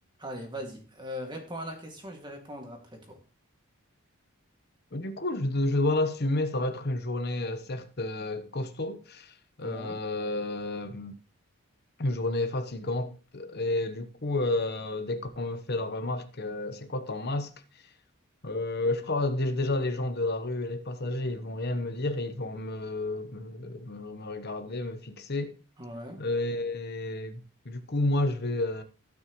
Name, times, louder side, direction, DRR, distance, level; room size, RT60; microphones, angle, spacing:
voice 1, 0.2-3.2 9.6-10.0 25.8-26.2, equal, 20° right, 2.1 m, -40 dB
voice 2, 4.9-11.1 12.0-17.5 18.4-25.6 26.2-28.8, left 2 dB, 45° left, 1.0 m, -31 dB
16.5 x 6.1 x 3.1 m
head